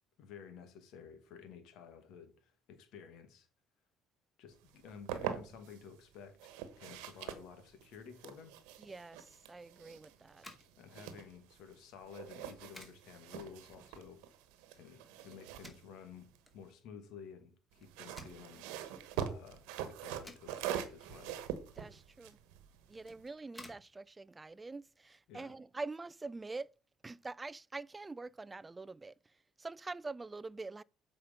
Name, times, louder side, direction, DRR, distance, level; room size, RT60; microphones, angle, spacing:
voice 1, 0.2-3.5 4.4-8.5 10.8-14.2 14.7-18.7 19.1-21.4 25.3-25.6, left 6 dB, 75° left, 2.0 m, -53 dB
sound 1, 4.7-5.8 6.4-11.8 12.1-16.7 17.7-23.3, right 10 dB, 85° right, 1.2 m, -44 dB
voice 2, 8.8-10.4 21.8-22.4 22.9-26.7 27.0-29.1 29.6-30.8, right 3 dB, 20° right, 0.3 m, -45 dB
sound 2, 10.3-25.3, left 1 dB, 10° left, 2.3 m, -60 dB
7.8 x 5.1 x 5.2 m
supercardioid pair, 85°, 0 cm